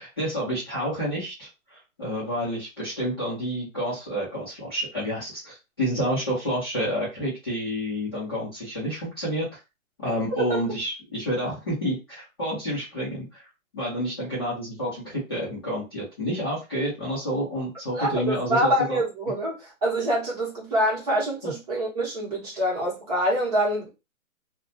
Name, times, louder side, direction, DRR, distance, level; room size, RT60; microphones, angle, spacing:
voice 1, 0.0-9.5 10.0-13.4 13.7-19.0 21.4-21.5, equal, 20° left, 0.6 m, -29 dB
voice 2, 17.9-23.9, equal, 30° right, 0.9 m, -25 dB
2.4 x 2.1 x 2.6 m
hypercardioid pair, 155°, 42 cm